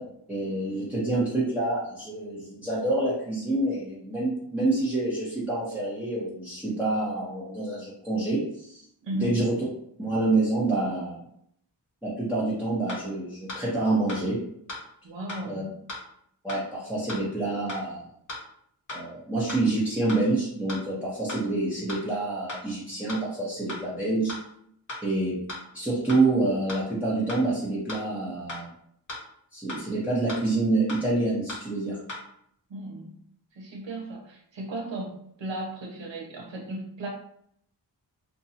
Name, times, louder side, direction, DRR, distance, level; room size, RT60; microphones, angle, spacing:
voice 1, 0.3-8.8 9.1-9.5 10.0-11.2 12.0-14.4 15.4-15.6 16.4-18.0 18.9-24.3 25.0-25.4 25.7-28.7 29.5-32.0, right 2 dB, 5° right, -9 dB, 0.9 m, -27 dB
voice 2, 9.0-9.4 15.0-15.8 32.7-33.2 33.5-37.1, right 2 dB, 80° right, 0 dB, 0.8 m, -35 dB
sound 1, 12.9-13.0 13.5-13.6 14.1-14.2 14.7-14.8 15.3-15.4 15.9-16.0 16.5-16.6 17.1-17.2 17.7-17.8 18.3-18.4 18.9-19.0 19.5-19.6 20.1-20.2 20.7-20.8 21.3-21.4 21.9-22.0 22.5-22.6 23.1-23.2 23.7-23.8 24.3-24.4 24.9-25.0 25.5-25.6 26.1-26.2 26.7-26.8 27.3-27.4 27.9-28.0 28.5-28.6 29.1-29.2 29.7-29.8 30.3-30.4 30.9-31.0 31.5-31.6 32.1-32.2, left 2 dB, 40° left, 1.1 m, -36 dB
2.6 x 2.2 x 2.7 m, 0.69 s
cardioid pair, 50°, 44 cm